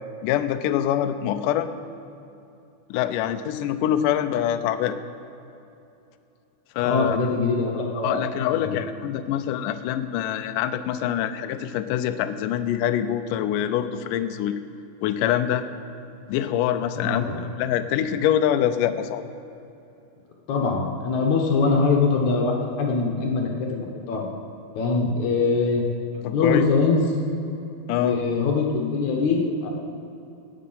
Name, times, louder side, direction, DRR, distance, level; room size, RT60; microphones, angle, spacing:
voice 1, 0.2-1.7 2.9-5.0 6.8-7.2 8.0-14.6 15.0-15.7 16.3-19.2 26.2-26.7 27.9-28.2, left 10 dB, 85° left, 9 dB, 1.9 m, -25 dB
voice 2, 6.8-8.3 8.5-8.7 17.0-17.4 20.5-24.2 24.8-25.8 26.3-27.0 28.0-29.7, left 4 dB, 60° left, 0 dB, 2.1 m, -23 dB
18.5 x 7.6 x 5.6 m, 2.8 s
omnidirectional pair, 4.5 m